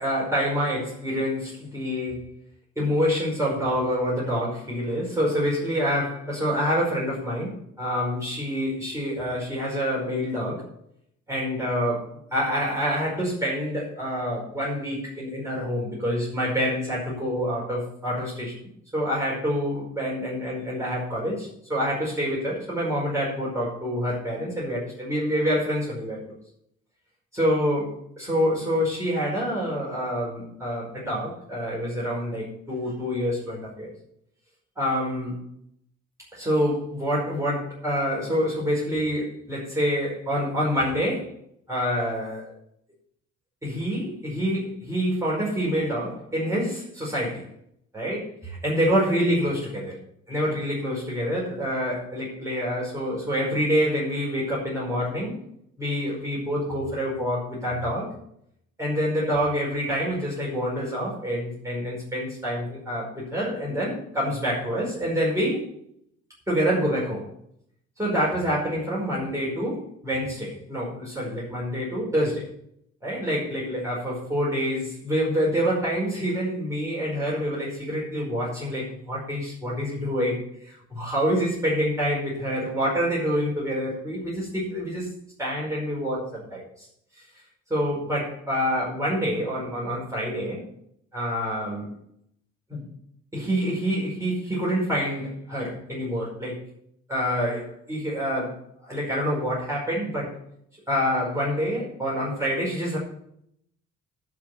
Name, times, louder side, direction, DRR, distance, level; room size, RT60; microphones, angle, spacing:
voice 1, 0.0-2.2 2.7-10.6 11.3-26.2 27.3-33.9 34.7-35.4 36.3-41.3 41.7-42.5 43.6-47.5 47.9-50.0 50.3-55.4 55.8-58.1 58.8-65.6 66.5-67.2 68.0-72.4 73.0-85.1 85.4-86.9 87.2-87.3 87.7-90.6 91.1-91.9 92.7-92.8 93.3-96.6 97.1-100.4 100.9-103.0, equal, 10° right, -6 dB, 5.1 m, -27 dB
12.0 x 5.9 x 8.3 m, 0.73 s
cardioid pair, 90°, 30 cm